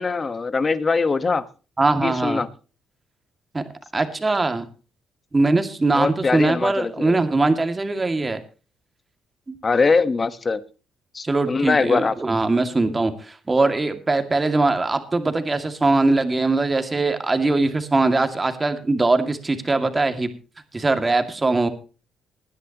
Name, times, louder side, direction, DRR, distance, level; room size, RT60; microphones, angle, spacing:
voice 1, 0.0-1.5 2.0-2.5 5.9-7.2 9.6-10.6 11.1-12.1, left 4 dB, 35° left, 1.3 m, -22 dB
voice 2, 1.8-2.4 3.5-3.6 3.9-4.7 5.3-8.4 9.5-9.6 11.2-20.3 20.7-21.7, right 3 dB, 25° right, 2.2 m, -21 dB
20.5 x 10.5 x 3.0 m
cardioid pair, 90°, 0 cm